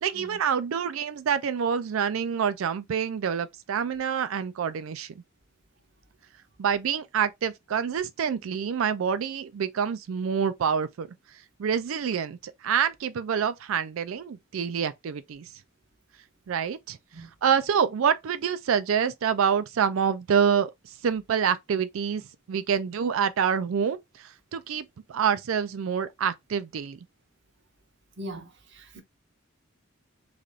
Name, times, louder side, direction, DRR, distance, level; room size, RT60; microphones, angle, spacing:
voice 1, 0.0-5.1 6.6-11.1 11.6-15.5 16.5-17.0 17.4-20.7 21.0-27.0, right 7 dB, 90° right, 0.4 m, -27 dB
voice 2, 28.2-29.0, equal, 60° right, 0.7 m, -41 dB
3.3 x 2.4 x 2.5 m
head